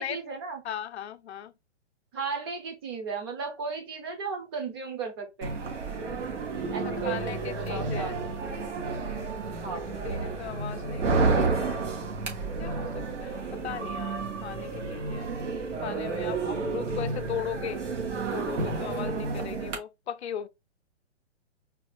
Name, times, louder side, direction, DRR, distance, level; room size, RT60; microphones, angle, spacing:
voice 1, 0.0-0.6 2.1-5.6 6.7-8.2 8.4-8.5 9.6-9.9, right 5 dB, 20° right, 0.6 m, -35 dB
voice 2, 0.6-1.5 7.0-8.0 10.0-11.9 12.6-15.3 15.8-17.8 18.3-20.5, left 9 dB, 65° left, 0.6 m, -37 dB
sound 1, 5.4-19.8, right 4 dB, 80° right, 1.7 m, -31 dB
4.2 x 2.4 x 3.2 m
hypercardioid pair, 160°, 35 cm